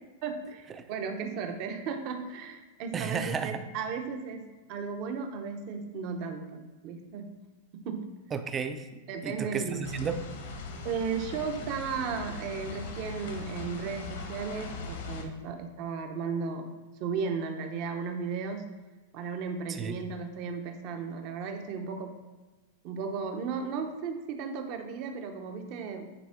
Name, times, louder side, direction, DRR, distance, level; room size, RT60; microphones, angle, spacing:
voice 1, 0.2-7.3 7.7-8.1 9.1-9.9 10.8-16.7 17.0-18.7 19.1-22.2 22.8-26.1, right 5 dB, 45° right, 5 dB, 0.8 m, -35 dB
voice 2, 2.9-3.6 8.3-10.3 19.7-20.0, right 6 dB, 20° right, 9 dB, 0.5 m, -33 dB
sound 1, 9.8-15.2, left 3 dB, 75° left, 1.2 m, -40 dB
9.3 x 3.6 x 3.6 m, 1.2 s
supercardioid pair, 140°, 0 cm